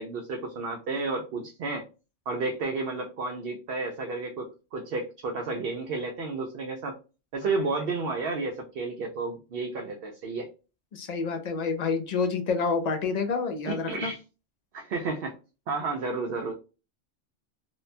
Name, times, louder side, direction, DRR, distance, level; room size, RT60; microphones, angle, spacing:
voice 1, 0.0-1.8 2.3-7.0 7.3-10.5 13.7-14.2 14.7-15.3 15.7-16.5, right 3 dB, 65° right, 2 dB, 0.7 m, -32 dB
voice 2, 10.9-14.1, left 4 dB, 65° left, 6 dB, 0.4 m, -28 dB
2.9 x 2.1 x 2.5 m, 0.32 s
omnidirectional pair, 1.2 m